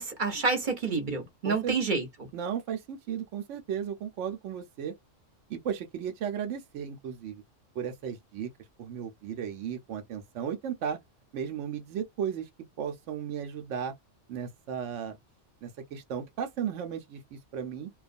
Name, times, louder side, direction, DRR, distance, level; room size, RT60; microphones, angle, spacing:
voice 1, 0.0-2.0, right 4 dB, 45° right, 0.9 m, -28 dB
voice 2, 1.4-1.8 2.3-5.0 5.5-7.4 7.8-8.5 8.8-11.0 11.3-12.5 12.8-13.9 14.3-15.2 15.6-17.9, right 8 dB, 75° right, 0.9 m, -35 dB
2.3 x 2.2 x 2.4 m
omnidirectional pair, 1.3 m